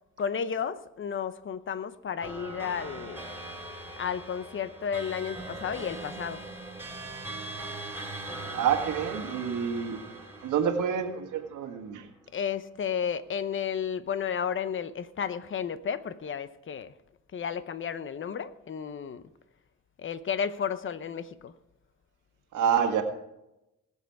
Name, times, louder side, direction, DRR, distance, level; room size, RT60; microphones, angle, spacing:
voice 1, 0.2-3.2 4.0-6.4 12.3-16.9 17.3-19.2 20.0-21.5, left 7 dB, 40° left, 0.8 m, -32 dB
sound 1, 2.2-11.8, right 2 dB, 10° right, 3.4 m, -41 dB
voice 2, 8.5-10.0 10.4-12.1 22.5-23.0, right 8 dB, 90° right, 1.8 m, -28 dB
19.0 x 7.3 x 4.7 m
cardioid pair, 90°, 30 cm